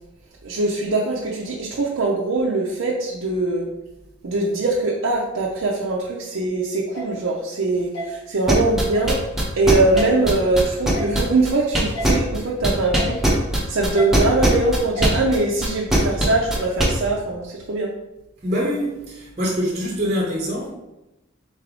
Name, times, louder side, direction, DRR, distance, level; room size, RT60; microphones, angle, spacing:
voice 1, 0.4-3.7 4.2-9.2 9.6-13.2 13.7-17.9, right 2 dB, 80° right, -3 dB, 0.6 m, -22 dB
sound 1, 6.9-7.1 7.9-8.1 8.9-9.1 9.9-10.1 10.9-11.1 11.9-12.1 12.9-13.1 13.9-14.1 15.0-15.1, equal, 85° left, 1.5 m, -30 dB
sound 2, 8.5-12.4 12.6-16.8, right 1 dB, ahead, 0.8 m, -19 dB
voice 2, 18.4-20.7, equal, 30° right, -3 dB, 0.7 m, -24 dB
4.0 x 3.4 x 3.7 m, 0.97 s
head